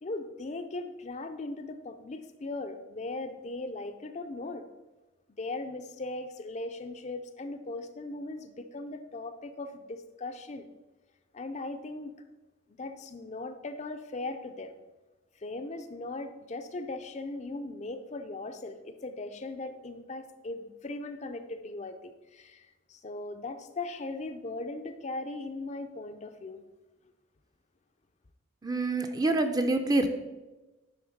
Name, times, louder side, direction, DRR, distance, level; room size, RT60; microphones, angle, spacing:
voice 1, 0.0-4.7 5.4-10.7 11.3-12.1 12.8-14.8 15.4-26.6, left 2 dB, 35° left, 7 dB, 0.5 m, -38 dB
voice 2, 28.6-30.1, right 2 dB, 20° right, 7 dB, 0.6 m, -26 dB
10.5 x 3.6 x 6.5 m, 1.1 s
head